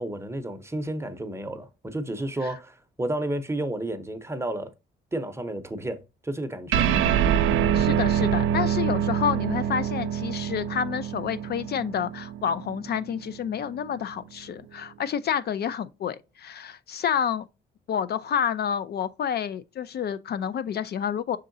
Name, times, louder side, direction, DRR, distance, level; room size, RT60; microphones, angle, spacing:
voice 1, 0.0-4.7 5.1-6.9, right 1 dB, 15° right, 0.8 m, -31 dB
sound 1, 6.7-13.5, right 9 dB, 85° right, 0.5 m, -25 dB
voice 2, 7.7-17.5 17.9-21.4, left 8 dB, 55° left, 0.4 m, -29 dB
5.4 x 3.7 x 2.6 m
cardioid pair, 90°, 20 cm